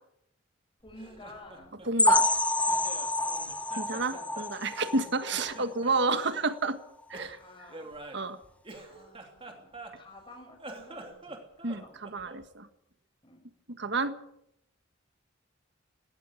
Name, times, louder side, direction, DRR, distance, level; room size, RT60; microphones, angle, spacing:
voice 1, 0.8-1.7 3.2-3.5 3.9-4.4 4.8-5.1 7.3-8.0 8.7-12.0 13.2-13.4, left 1 dB, 25° left, 3 dB, 5.7 m, -52 dB
Laughter, 0.8-3.1 3.5-5.0 5.3-6.5 7.1-10.2 10.5-12.5, right 2 dB, 25° right, 2.9 m, -47 dB
voice 2, 1.9-2.3 3.8-6.8 7.1-7.4 8.1-8.4 11.6-12.7 13.7-14.1, right 3 dB, 60° right, 10 dB, 1.6 m, -30 dB
sound 1, 2.0-5.6 6.0-6.2 6.5-6.6 7.1-7.2, left 2 dB, 5° left, 0.8 m, -28 dB
18.5 x 17.5 x 8.4 m, 0.76 s
head